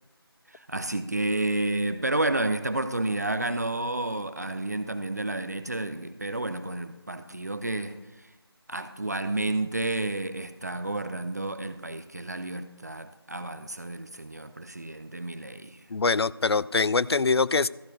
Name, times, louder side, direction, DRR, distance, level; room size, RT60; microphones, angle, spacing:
voice 1, 0.5-8.0 8.7-15.8, right 2 dB, 40° right, 0.5 m, -30 dB
voice 2, 15.9-17.7, left 4 dB, 75° left, 0.4 m, -23 dB
13.5 x 4.8 x 6.5 m
figure-of-eight pair, 170°, 13 cm